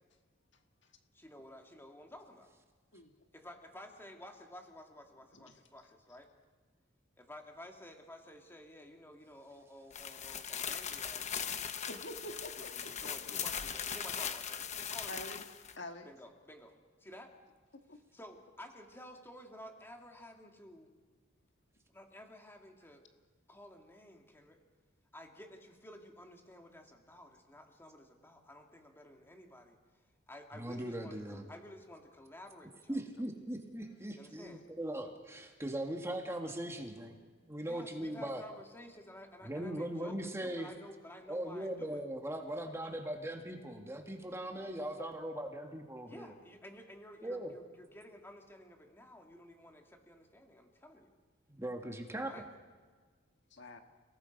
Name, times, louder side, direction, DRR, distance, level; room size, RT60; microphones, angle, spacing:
voice 1, 1.1-2.5 3.3-6.3 7.2-11.6 12.6-15.3 16.0-17.3 18.1-20.9 21.9-23.0 23.5-24.6 25.1-29.8 30.3-33.0 34.2-34.7 37.5-42.0 42.8-42.9 46.1-51.1 52.2-52.5, left 1 dB, 10° left, 3 dB, 2.3 m, -53 dB
sound 1, 9.9-15.7, left 8 dB, 35° left, 1.0 m, -39 dB
voice 2, 11.9-13.4 15.1-15.4 15.8-16.1 17.9-18.0 53.5-53.8, left 1 dB, 65° left, 5 dB, 1.7 m, -47 dB
voice 3, 30.5-31.4 32.9-38.4 39.4-40.7 41.3-46.3 47.2-47.5 51.5-52.5, right 1 dB, 15° right, 3 dB, 1.9 m, -40 dB
30.0 x 18.5 x 5.4 m, 1.5 s
head